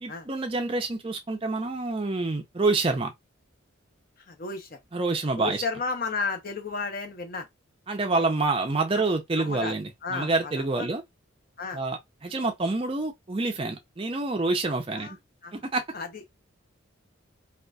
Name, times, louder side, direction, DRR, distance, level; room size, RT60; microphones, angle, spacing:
voice 1, 0.0-3.1 4.9-5.6 7.9-11.0 11.7-15.1 15.5-15.8, right 3 dB, 25° right, 0.4 m, -27 dB
voice 2, 4.3-4.8 5.4-7.5 8.9-9.7 10.0-10.9 11.6-11.8 14.9-15.1 15.4-15.5 15.9-16.2, left 4 dB, 45° left, 0.7 m, -33 dB
3.8 x 2.4 x 2.2 m
head